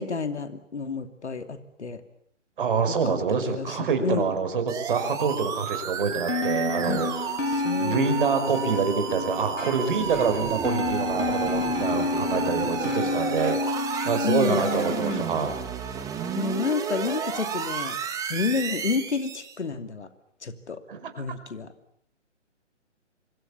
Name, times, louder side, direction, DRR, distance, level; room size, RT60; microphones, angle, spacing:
voice 1, 0.0-2.0 2.9-4.3 6.9-7.0 7.5-8.1 14.2-14.6 16.3-20.1 20.4-20.8 21.2-21.7, left 5 dB, 65° left, 9 dB, 2.9 m, -30 dB
voice 2, 2.6-7.1 7.8-13.6 14.0-15.6 20.9-21.1, right 5 dB, 45° right, 7 dB, 5.5 m, -26 dB
sound 1, 4.7-19.6, right 6 dB, 10° right, 1.8 m, -32 dB
sound 2, 6.3-15.2, left 3 dB, 85° left, 3.6 m, -29 dB
27.5 x 24.0 x 7.2 m, 0.66 s
figure-of-eight pair, 135°, 37 cm